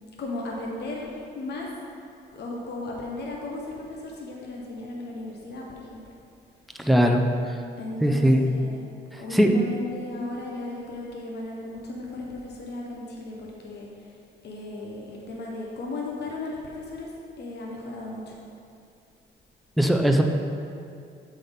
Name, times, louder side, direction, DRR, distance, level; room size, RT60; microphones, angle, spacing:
voice 1, 0.2-1.7 2.3-6.0 7.8-8.9 9.2-13.9 14.4-17.1 17.4-18.3, left 2 dB, 60° left, -2 dB, 1.1 m, -35 dB
voice 2, 6.9-7.2 8.0-8.4 9.3-9.5 19.8-20.2, equal, ahead, 3 dB, 0.6 m, -19 dB
7.8 x 4.3 x 5.2 m, 2.5 s
cardioid pair, 90°, 20 cm